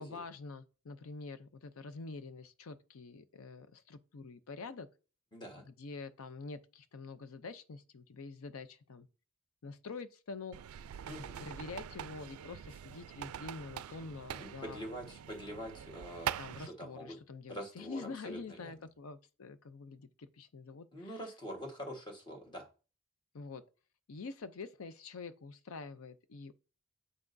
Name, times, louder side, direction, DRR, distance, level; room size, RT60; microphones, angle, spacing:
voice 1, 0.0-4.9 5.7-9.1 9.6-10.6 11.4-14.9 16.4-21.1 23.3-23.6 24.1-26.5, left 4 dB, 70° left, 0.6 m, -46 dB
voice 2, 5.3-5.7 11.1-11.5 14.4-16.3 16.6-17.2 17.5-18.7 20.9-22.7, equal, 20° left, 1.4 m, -45 dB
sound 1, 10.5-16.7, right 9 dB, 85° right, 0.3 m, -43 dB
7.6 x 6.0 x 2.6 m
head